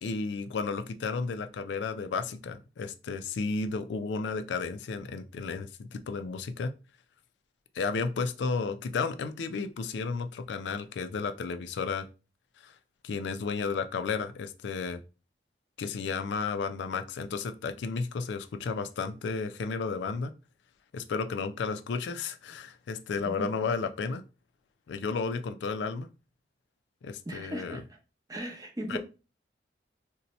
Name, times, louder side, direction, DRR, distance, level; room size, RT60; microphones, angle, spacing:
voice 1, 0.0-6.7 7.7-12.1 12.6-12.7 13.0-15.0 15.8-20.3 20.9-24.2 24.9-26.1 27.0-27.8 28.9-29.0, left 4 dB, 80° left, 9 dB, 0.3 m, -33 dB
voice 2, 27.2-28.0 28.3-29.0, right 1 dB, 20° right, 2 dB, 0.6 m, -37 dB
2.7 x 2.2 x 4.0 m, 0.32 s
head